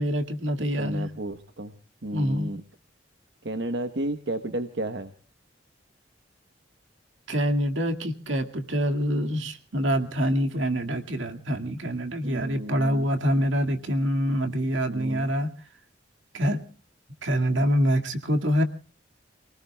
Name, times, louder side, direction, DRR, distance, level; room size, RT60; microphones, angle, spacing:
voice 1, 0.0-1.1 2.1-2.5 7.3-15.5 16.3-16.6 17.2-18.6, equal, 80° right, 5 dB, 2.1 m, -25 dB
voice 2, 0.8-1.7 2.0-2.6 3.4-5.1 12.2-13.1 14.9-15.3, right 1 dB, 65° right, 8 dB, 1.1 m, -32 dB
29.5 x 19.0 x 2.3 m, 0.41 s
head